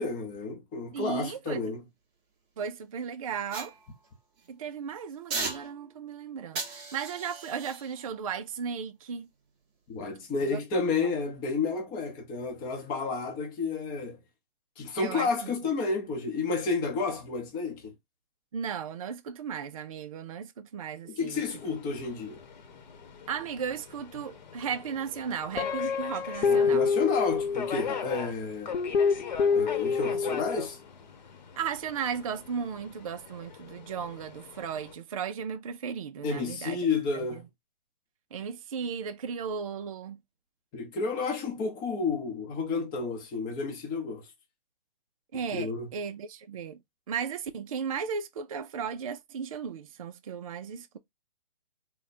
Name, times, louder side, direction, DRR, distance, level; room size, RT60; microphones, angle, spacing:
voice 1, 0.0-1.8 9.9-14.2 14.8-17.9 21.1-22.4 26.4-28.8 29.5-30.8 36.2-37.5 40.7-44.3 45.5-45.9, left 4 dB, 15° left, 0.8 m, -31 dB
voice 2, 0.9-1.8 2.6-3.7 4.5-9.3 10.5-10.6 15.0-15.5 18.5-21.4 23.3-26.9 31.6-36.8 37.1-37.4 38.3-40.2 45.3-46.8 47.1-51.0, right 7 dB, 35° right, 0.4 m, -35 dB
sound 1, 3.5-4.5 5.3-6.1 6.6-9.8 10.3-10.5, right 4 dB, 15° right, 0.9 m, -39 dB
Subway metro underground, 21.3-34.9, left 7 dB, 50° left, 1.0 m, -43 dB
Guitar, 25.6-28.0 28.7-30.7, left 5 dB, 85° left, 0.6 m, -26 dB
3.7 x 2.2 x 4.1 m
hypercardioid pair, 150°, 29 cm